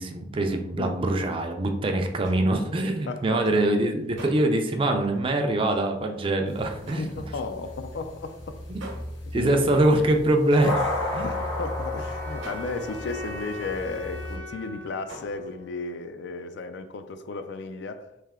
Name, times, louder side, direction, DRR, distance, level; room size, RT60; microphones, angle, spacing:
voice 1, 0.0-7.0 8.7-8.8 9.3-11.3, right 1 dB, 30° right, 0.4 m, -24 dB
sound 1, 2.2-12.0 12.3-14.3 14.6-15.5, right 1 dB, 80° right, 0.8 m, -47 dB
voice 2, 3.1-3.6 7.0-8.6 9.3-9.5 11.1-18.1, left 3 dB, 65° left, 0.3 m, -34 dB
sound 2, 6.5-14.4, left 2 dB, 80° left, 1.0 m, -34 dB
sound 3, 11.2-16.3, left 1 dB, 40° left, 0.7 m, -42 dB
3.3 x 2.7 x 3.5 m
head